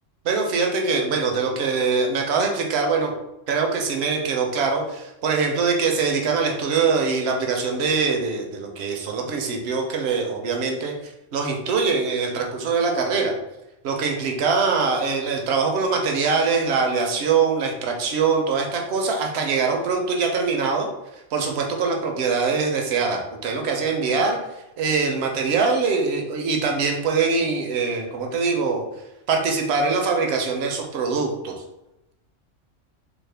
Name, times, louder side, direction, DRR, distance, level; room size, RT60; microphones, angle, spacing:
voice 1, 0.2-3.1 3.5-13.3 13.8-20.9 21.3-24.4 24.8-28.9 29.3-31.5, right 4 dB, 65° right, 2 dB, 0.8 m, -23 dB
3.4 x 2.0 x 3.2 m, 0.93 s
omnidirectional pair, 1.3 m